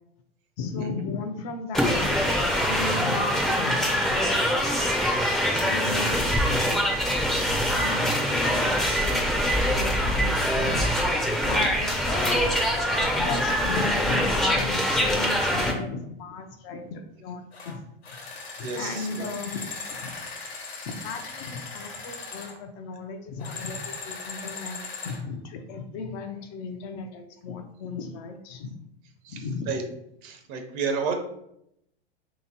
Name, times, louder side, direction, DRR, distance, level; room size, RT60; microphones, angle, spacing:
voice 1, 0.6-4.7 5.5-7.2 7.5-12.7 13.0-17.8 18.6-20.1 20.9-24.8 25.0-28.7 29.3-29.7, left 4 dB, 45° left, 5 dB, 0.6 m, -35 dB
sound 1, 1.7-15.7, equal, ahead, 0.6 m, -24 dB
voice 2, 5.2-5.9 7.4-7.5 11.5-11.7 18.6-19.3 24.8-24.9 29.2-29.8 30.2-31.2, right 5 dB, 50° right, 5 dB, 0.8 m, -33 dB
sound 2, 17.5-17.7 18.0-22.6 23.4-25.2, left 4 dB, 90° left, 1.2 m, -38 dB
3.3 x 2.9 x 4.0 m, 0.77 s
hypercardioid pair, 110°, 31 cm